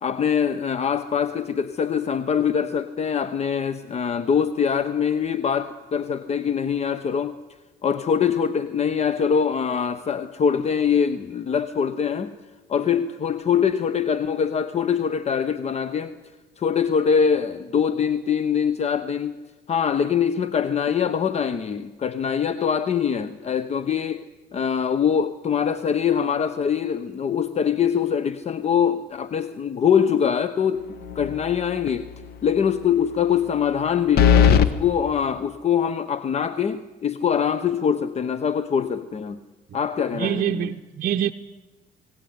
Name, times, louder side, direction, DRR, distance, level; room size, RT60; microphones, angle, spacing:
voice 1, 0.0-7.4 7.8-12.3 12.7-16.1 16.6-19.4 19.7-24.2 24.5-30.9 31.1-32.1 32.4-39.4 39.7-40.8, left 7 dB, 40° left, 0.9 m, -23 dB
sound 1, 31.0-31.5 31.9-32.0 34.2-34.7, left 8 dB, 70° left, 1.5 m, -16 dB
voice 2, 40.1-41.3, right 10 dB, 55° right, 0.8 m, -25 dB
22.0 x 17.5 x 9.5 m
cardioid pair, 110°, 17 cm